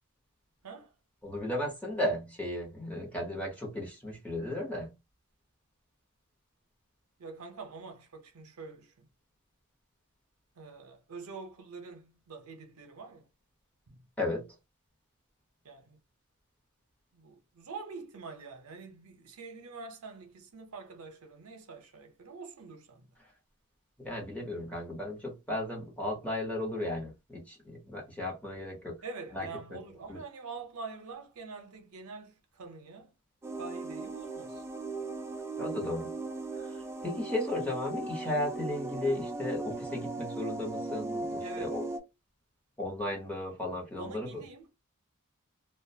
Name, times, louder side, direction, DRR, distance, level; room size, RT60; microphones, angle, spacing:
voice 1, 0.6-0.9 7.2-9.1 10.5-13.3 13.9-14.0 15.6-16.0 17.1-23.1 29.0-33.1 33.5-34.6 41.4-41.8 44.0-44.7, right 4 dB, 75° right, 0.6 m, -45 dB
voice 2, 1.2-4.9 14.2-14.4 24.0-28.9 29.3-29.8 30.1-30.2 35.6-36.1 36.6-41.8 42.8-44.4, left 1 dB, 5° left, 0.8 m, -35 dB
sound 1, 33.4-42.0, right 2 dB, 10° right, 0.3 m, -38 dB
2.5 x 2.1 x 2.6 m
head